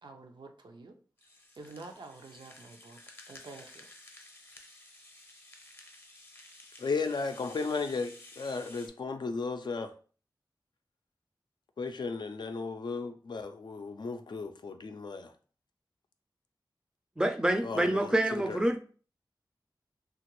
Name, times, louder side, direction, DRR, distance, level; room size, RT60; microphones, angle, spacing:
voice 1, 0.0-1.0 1.6-3.9, right 3 dB, 75° right, 0.5 m, -49 dB
Rattle (instrument), 1.2-8.9, left 2 dB, 25° left, 0.6 m, -53 dB
voice 2, 6.8-9.9 11.8-15.3 17.6-18.6, left 4 dB, 70° left, 0.4 m, -35 dB
voice 3, 17.2-18.8, right 1 dB, 10° right, 0.4 m, -27 dB
2.9 x 2.4 x 3.0 m
wide cardioid pair, 65°, 8 cm